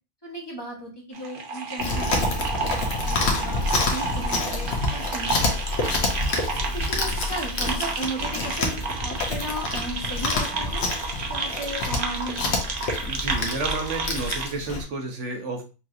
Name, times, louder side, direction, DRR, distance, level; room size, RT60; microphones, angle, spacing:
voice 1, 0.2-5.5 6.4-10.8 11.2-12.5, right 1 dB, 20° left, -2 dB, 1.2 m, -36 dB
sound 1, 1.1-14.5, right 4 dB, 50° right, 0.9 m, -31 dB
Chewing mastication, 1.8-14.8, left 2 dB, 65° left, 1.2 m, -27 dB
voice 2, 13.0-15.7, right 3 dB, 75° right, 3 dB, 1.3 m, -31 dB
5.8 x 3.0 x 2.5 m, 0.32 s
omnidirectional pair, 1.2 m